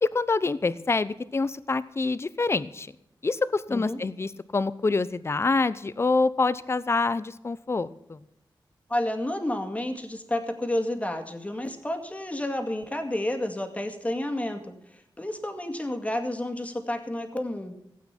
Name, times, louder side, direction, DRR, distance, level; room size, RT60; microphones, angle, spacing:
voice 1, 0.0-2.9 3.2-8.2, left 3 dB, 30° left, 16 dB, 0.7 m, -26 dB
voice 2, 8.9-17.7, left 1 dB, 15° left, 6 dB, 2.1 m, -30 dB
16.5 x 8.6 x 5.9 m, 0.80 s
wide cardioid pair, 120°, 9 cm